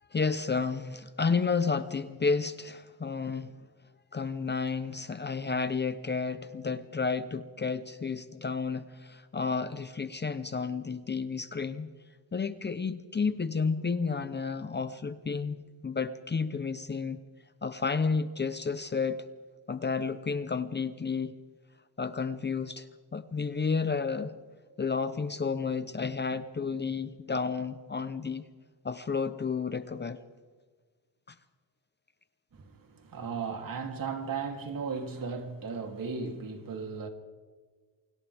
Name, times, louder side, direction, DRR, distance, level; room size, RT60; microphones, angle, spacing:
voice 1, 0.1-3.5 4.1-11.9 12.3-17.2 17.6-19.2 19.7-21.3 22.0-22.9 23.1-24.3 24.8-28.4 28.8-30.2, left 5 dB, 25° left, 0.9 m, -31 dB
voice 2, 32.5-37.1, right 5 dB, 50° right, 3.2 m, -36 dB
28.5 x 25.5 x 3.6 m
cardioid pair, 120°, 42 cm